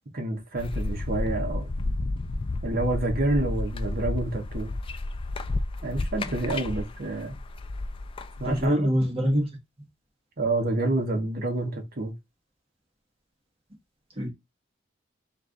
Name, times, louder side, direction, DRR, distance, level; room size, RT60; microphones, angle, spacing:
voice 1, 0.1-1.8 2.6-4.7 5.8-7.3 8.4-8.9 10.4-12.1, right 2 dB, 50° right, 1.2 m, -28 dB
sound 1, 0.6-8.7, left 2 dB, 25° left, 0.3 m, -31 dB
voice 2, 8.4-9.5 14.2-14.3, equal, 30° right, 1.5 m, -24 dB
3.3 x 3.3 x 3.8 m
head